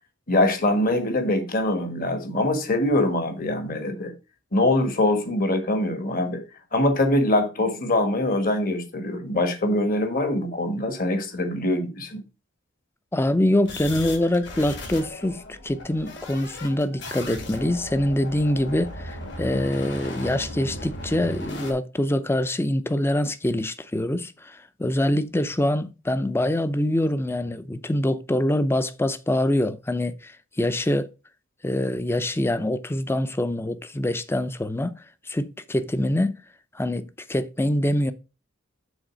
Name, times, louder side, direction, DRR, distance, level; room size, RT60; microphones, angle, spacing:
voice 1, 0.3-4.1 4.5-6.4 6.7-12.2, left 1 dB, 45° left, 1.5 m, -23 dB
voice 2, 13.1-31.1 31.6-36.3 36.7-38.1, left 1 dB, 10° left, 0.5 m, -25 dB
sound 1, 13.6-21.7, left 1 dB, 60° left, 2.2 m, -37 dB
6.4 x 4.0 x 6.2 m
head